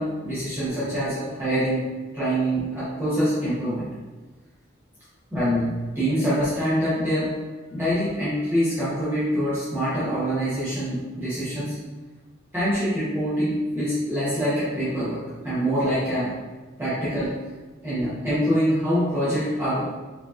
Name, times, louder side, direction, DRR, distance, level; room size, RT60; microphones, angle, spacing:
voice 1, 0.0-1.9 2.1-3.9 5.3-7.3 7.7-11.7 12.5-16.3 16.8-17.4 17.8-19.9, equal, 10° right, -13 dB, 1.0 m, -25 dB
4.6 x 2.9 x 2.4 m, 1.2 s
head